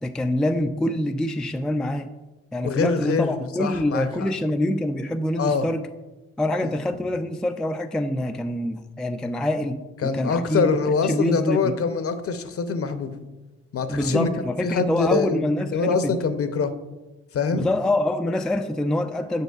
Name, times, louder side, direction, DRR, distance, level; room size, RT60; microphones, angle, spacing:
voice 1, 0.0-2.1 2.5-5.9 6.4-10.7 11.0-11.7 13.9-16.2 17.5-19.4, left 1 dB, ahead, 6 dB, 0.3 m, -25 dB
voice 2, 2.6-4.3 5.4-5.7 6.6-6.7 10.0-13.2 13.7-14.3 14.6-15.4 15.7-16.7 17.3-17.7, left 5 dB, 45° left, 10 dB, 0.7 m, -24 dB
6.5 x 6.1 x 2.4 m, 1.1 s
supercardioid pair, 60°, 31 cm